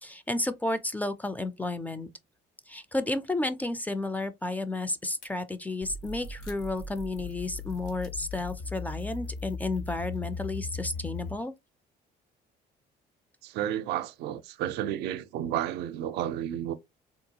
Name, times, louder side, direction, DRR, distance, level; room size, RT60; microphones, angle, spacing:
voice 1, 0.0-2.1 2.7-11.5, left 2 dB, 10° left, 0.3 m, -32 dB
sound 1, 5.2-5.3 6.0-8.5 8.8-9.0 9.5-10.6, left 4 dB, 80° left, 1.3 m, -57 dB
sound 2, 5.8-11.4, left 4 dB, 50° left, 0.8 m, -38 dB
voice 2, 13.4-16.7, right 11 dB, 80° right, 0.4 m, -32 dB
3.7 x 2.3 x 2.7 m
cardioid pair, 110°, 17 cm